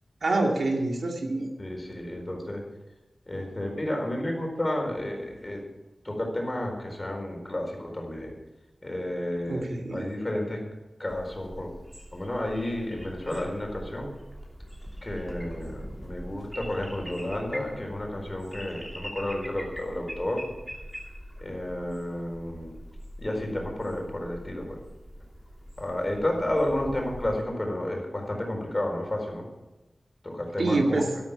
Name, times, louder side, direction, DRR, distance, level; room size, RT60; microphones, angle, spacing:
voice 1, 0.2-1.5 9.5-10.1 30.6-31.1, right 2 dB, 80° right, 1 dB, 2.3 m, -26 dB
voice 2, 1.6-2.6 3.3-5.6 6.0-8.3 8.8-10.6 11.0-11.7 12.1-14.1 15.0-20.5 21.4-22.7 23.2-24.8 25.8-29.4 30.2-31.0, left 1 dB, 30° left, 1 dB, 4.4 m, -31 dB
sound 1, 11.1-27.4, equal, 5° right, 3.0 m, -43 dB
12.5 x 12.0 x 6.0 m, 1.0 s
wide cardioid pair, 75°, 0 cm